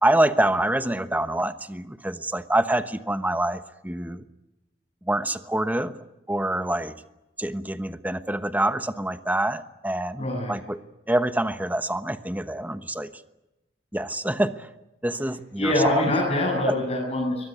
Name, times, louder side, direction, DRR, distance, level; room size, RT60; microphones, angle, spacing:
voice 1, 0.0-4.2 5.0-6.0 6.3-6.9 7.4-10.8 11.1-13.1 13.9-14.7 15.0-16.2 16.7-16.8, right 1 dB, 10° right, 10 dB, 1.1 m, -26 dB
voice 2, 10.2-10.5 15.6-17.4, left 1 dB, 35° left, -4 dB, 7.8 m, -24 dB
23.5 x 20.5 x 9.4 m, 0.96 s
head